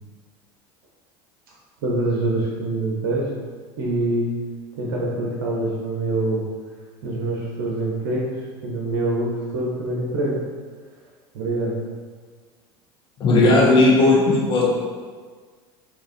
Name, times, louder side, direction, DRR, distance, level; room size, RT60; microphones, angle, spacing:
voice 1, 1.8-3.3 3.8-4.3 4.8-6.5 7.0-8.3 8.6-10.4 11.3-11.7, right 2 dB, 75° right, -3 dB, 0.7 m, -25 dB
voice 2, 13.2-14.6, left 2 dB, 40° left, -5 dB, 1.0 m, -15 dB
4.0 x 2.7 x 2.5 m, 1.5 s
supercardioid pair, 100°, 13 cm